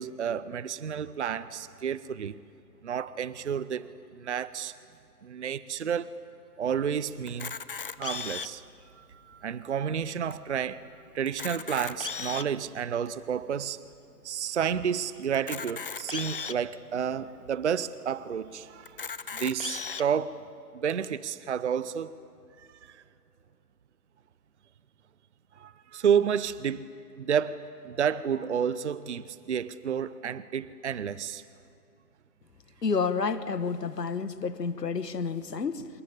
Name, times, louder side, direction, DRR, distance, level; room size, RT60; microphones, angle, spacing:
voice 1, 0.0-2.3 2.8-4.7 5.2-6.1 6.6-7.5 8.0-8.6 9.0-10.8 11.1-13.8 14.2-19.0 19.3-20.4 20.7-22.1 22.8-23.0 25.6-26.9 27.2-31.4, right 8 dB, 45° right, 0.7 m, -30 dB
Camera, 7.3-8.7 9.3-9.4 9.6-9.8 10.3-10.4 11.2-12.6 13.2-13.3 15.3-16.6 17.3-17.4 17.7-17.8 18.8-20.0, left 5 dB, 35° left, 0.6 m, -36 dB
voice 2, 32.8-35.9, left 5 dB, 75° left, 1.5 m, -30 dB
26.5 x 22.0 x 8.6 m
figure-of-eight pair, 145°, 49 cm